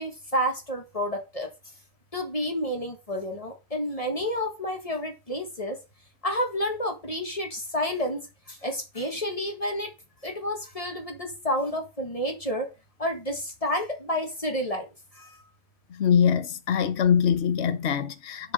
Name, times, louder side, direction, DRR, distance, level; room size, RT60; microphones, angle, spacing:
voice 1, 0.0-1.5 2.1-5.8 6.2-8.2 8.5-9.9 10.2-12.7 13.0-15.4 16.8-16.9, equal, 20° left, 1.7 m, -30 dB
voice 2, 16.0-18.5, left 8 dB, 50° left, 1.0 m, -23 dB
6.5 x 6.0 x 5.2 m
omnidirectional pair, 1.7 m